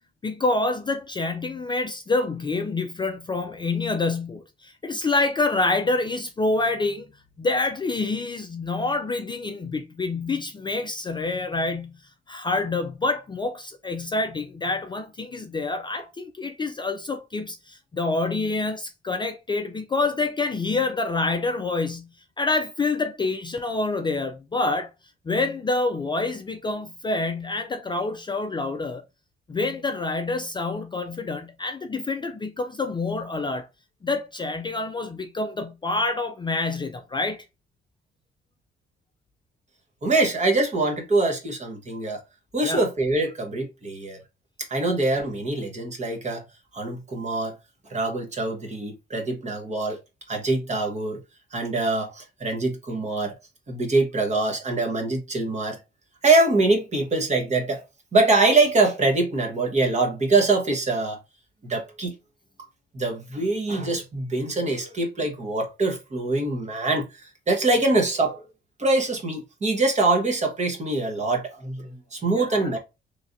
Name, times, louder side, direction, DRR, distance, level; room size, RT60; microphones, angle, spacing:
voice 1, 0.2-7.1 7.4-12.0 12.3-22.1 22.4-24.9 25.3-29.0 29.5-33.7 34.0-37.4 42.6-42.8 44.8-44.9 72.3-72.7, left 3 dB, 25° left, 0.4 m, -27 dB
voice 2, 40.0-42.2 42.5-44.2 44.7-46.4 46.7-47.5 47.9-50.0 50.3-51.2 51.5-53.3 53.7-55.8 56.2-57.8 58.1-61.2 61.6-62.1 62.9-67.2 67.5-68.4 68.8-72.8, right 2 dB, 35° right, 1.1 m, -24 dB
3.2 x 2.7 x 2.5 m
cardioid pair, 90°, 20 cm